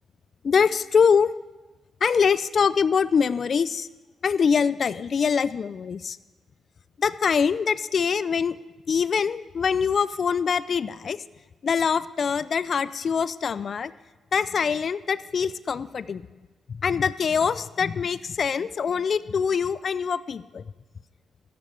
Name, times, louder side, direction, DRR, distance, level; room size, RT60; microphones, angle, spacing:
voice 1, 0.4-1.3 2.0-3.9 4.2-6.2 7.0-8.6 8.9-11.2 11.6-13.9 14.3-16.3 16.7-20.6, left 6 dB, 55° left, 17 dB, 0.4 m, -24 dB
13.5 x 11.0 x 3.4 m, 1.2 s
supercardioid pair, 60°, 0 cm